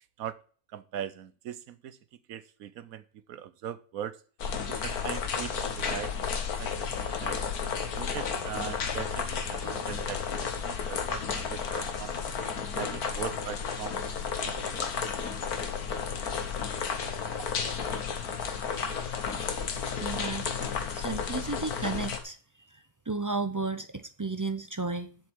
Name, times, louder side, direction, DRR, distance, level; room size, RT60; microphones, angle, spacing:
voice 1, 0.7-2.0 2.3-4.2 4.7-7.4 7.9-12.1 12.7-14.0 14.4-14.9 17.4-17.5, right 10 dB, 75° right, 1.2 m, -40 dB
sound 1, 4.4-22.2, left 6 dB, 80° left, 1.8 m, -32 dB
voice 2, 20.0-20.5 20.9-22.4 23.1-25.2, right 3 dB, 30° right, 0.3 m, -33 dB
7.6 x 7.4 x 7.9 m
omnidirectional pair, 1.6 m